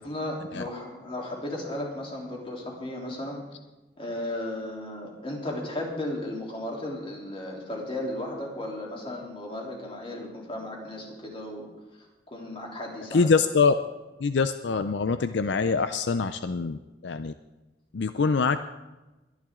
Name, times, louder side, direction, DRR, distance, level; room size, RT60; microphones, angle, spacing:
voice 1, 0.0-3.4 4.0-11.7 12.3-13.3, left 1 dB, 30° left, -2 dB, 3.4 m, -35 dB
voice 2, 13.1-13.7 14.2-17.3 17.9-18.6, left 4 dB, 75° left, 10 dB, 0.5 m, -24 dB
22.0 x 10.5 x 3.7 m, 1.1 s
head